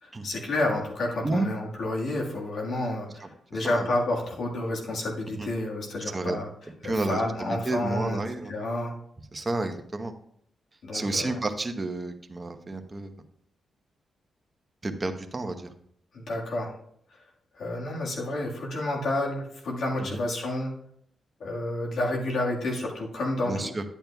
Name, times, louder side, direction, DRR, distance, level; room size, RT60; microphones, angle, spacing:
voice 1, 0.0-6.5 6.8-8.2 8.5-8.9 10.8-11.3 16.1-16.7 17.5-20.7 21.4-23.7, left 1 dB, 70° left, -1 dB, 1.7 m, -30 dB
voice 2, 3.2-3.9 5.4-5.5 6.1-6.4 6.7-8.5 9.3-10.1 10.9-13.2 14.8-15.7 20.1-20.2 23.5-23.8, right 2 dB, 25° right, 6 dB, 1.0 m, -31 dB
10.5 x 8.7 x 2.3 m, 0.67 s
cardioid pair, 80°, 0 cm